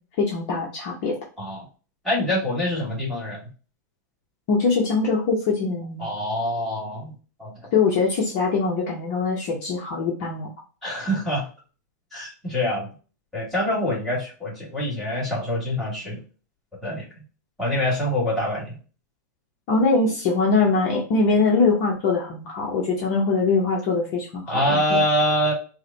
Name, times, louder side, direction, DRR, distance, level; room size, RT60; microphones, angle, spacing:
voice 1, 0.2-1.2 4.5-6.1 7.7-10.5 19.7-25.0, left 4 dB, 40° left, -2 dB, 0.8 m, -22 dB
voice 2, 2.0-3.4 6.0-7.1 7.4-7.5 10.8-11.5 12.1-12.9 13.3-16.2 16.8-17.1 17.6-18.8 24.5-25.5, left 1 dB, ahead, -6 dB, 1.9 m, -25 dB
4.7 x 2.2 x 2.7 m, 0.37 s
supercardioid pair, 160°, 10 cm